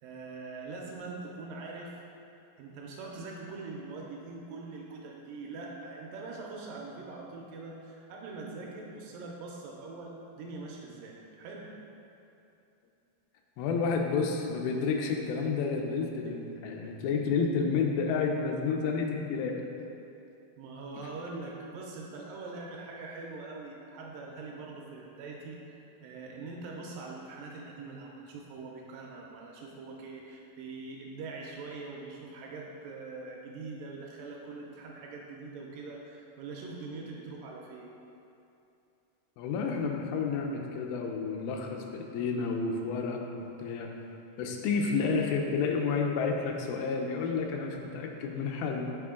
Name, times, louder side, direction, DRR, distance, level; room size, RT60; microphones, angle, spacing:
voice 1, 0.0-2.0 2.6-11.7 20.6-37.9, right 3 dB, 80° right, -2 dB, 2.2 m, -43 dB
voice 2, 13.6-19.7 39.4-43.9 44.4-48.9, left 5 dB, 85° left, 2 dB, 2.4 m, -30 dB
7.4 x 3.6 x 3.6 m, 2.8 s
omnidirectional pair, 4.1 m